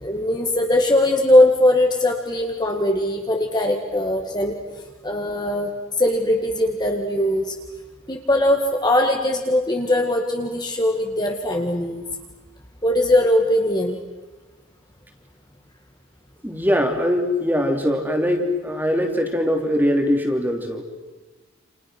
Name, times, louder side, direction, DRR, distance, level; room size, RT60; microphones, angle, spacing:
voice 1, 0.0-4.6 5.0-7.5 8.1-12.0 12.8-14.0, left 1 dB, 20° left, 2 dB, 2.0 m, -20 dB
voice 2, 16.4-20.8, equal, 10° right, 4 dB, 2.9 m, -21 dB
29.5 x 29.0 x 6.2 m, 1.2 s
head